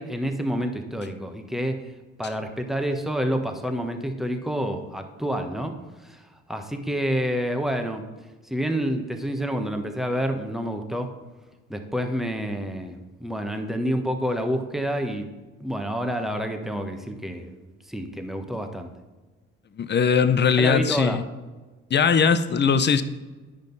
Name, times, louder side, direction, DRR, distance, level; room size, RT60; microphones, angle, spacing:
voice 1, 0.0-1.8 2.2-6.2 6.5-8.0 8.5-11.1 11.7-15.3 15.6-18.9 20.6-21.2, equal, ahead, 5 dB, 1.1 m, -28 dB
voice 2, 19.8-21.2 21.9-23.0, left 6 dB, 35° left, 12 dB, 0.7 m, -20 dB
9.9 x 5.2 x 4.0 m, 1.3 s
supercardioid pair, 65°, 31 cm